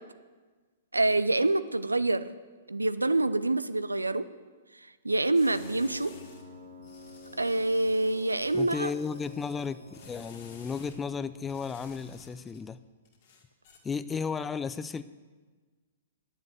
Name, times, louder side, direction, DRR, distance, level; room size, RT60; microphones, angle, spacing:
voice 1, 0.9-2.3 2.7-4.3 5.0-6.1 7.4-8.9, right 2 dB, 85° right, 14 dB, 0.5 m, -26 dB
sound 1, 5.3-6.4 6.8-11.0 11.5-12.6 13.0-13.8, left 5 dB, 50° left, 2.1 m, -54 dB
Piano, 5.5-12.0, right 1 dB, 55° right, 1.8 m, -50 dB
voice 2, 8.5-12.8 13.8-15.0, left 6 dB, 15° left, 14 dB, 0.4 m, -34 dB
9.5 x 7.2 x 9.1 m, 1.4 s
figure-of-eight pair, 110°, 0 cm